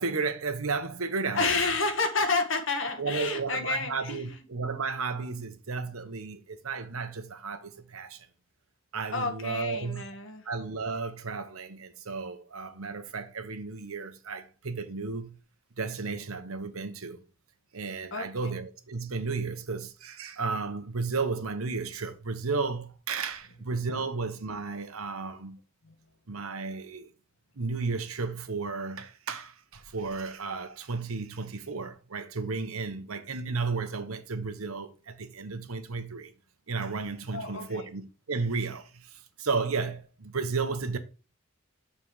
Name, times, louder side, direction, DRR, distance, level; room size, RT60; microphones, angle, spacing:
voice 1, 0.0-1.5 3.0-8.3 8.9-10.0 10.4-15.4 15.8-17.2 17.7-25.6 26.3-27.1 27.6-36.3 36.7-41.0, right 4 dB, 80° right, 1.0 m, -33 dB
voice 2, 1.3-4.4 9.1-10.5 18.1-18.5 25.8-25.9 37.3-37.9, left 3 dB, 65° left, 1.4 m, -30 dB
7.4 x 4.2 x 4.7 m
head